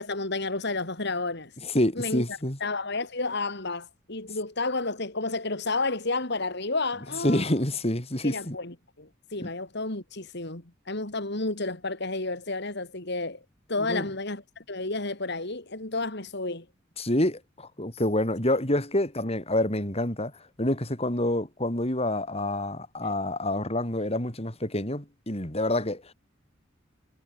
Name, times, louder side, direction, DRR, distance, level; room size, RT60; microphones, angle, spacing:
voice 1, 0.0-1.5 1.9-7.5 8.2-13.4 13.7-16.6, left 3 dB, 55° left, 3.4 m, -31 dB
voice 2, 1.6-2.6 7.2-8.6 9.4-9.5 13.9-14.0 17.0-20.3 20.6-26.1, left 1 dB, 30° left, 4.6 m, -27 dB
head